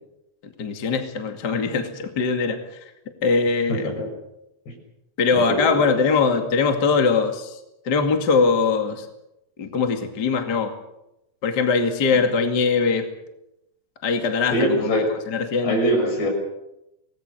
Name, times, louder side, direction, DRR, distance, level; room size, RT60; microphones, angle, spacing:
voice 1, 0.6-2.6 3.2-3.9 5.2-7.6 7.8-9.1 9.6-10.7 11.4-13.1 14.0-15.7, left 4 dB, 35° left, 4 dB, 2.1 m, -21 dB
voice 2, 5.3-5.7 14.5-15.1 15.6-16.3, equal, 75° left, 3 dB, 8.4 m, -22 dB
26.0 x 19.5 x 6.7 m, 0.88 s
omnidirectional pair, 4.8 m